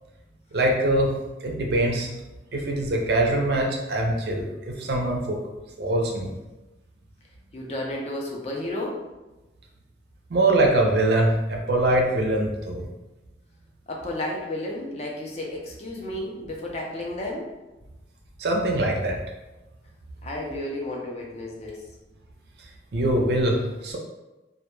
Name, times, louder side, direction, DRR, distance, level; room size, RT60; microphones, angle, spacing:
voice 1, 0.5-1.1 1.4-2.1 2.5-5.4 5.8-6.3 10.3-12.9 18.4-19.2 22.9-24.0, right 1 dB, 60° right, 0 dB, 0.4 m, -23 dB
voice 2, 7.5-9.0 13.9-17.5 20.2-21.8, left 1 dB, 35° left, -2 dB, 0.4 m, -32 dB
2.1 x 2.1 x 3.0 m, 1.1 s
head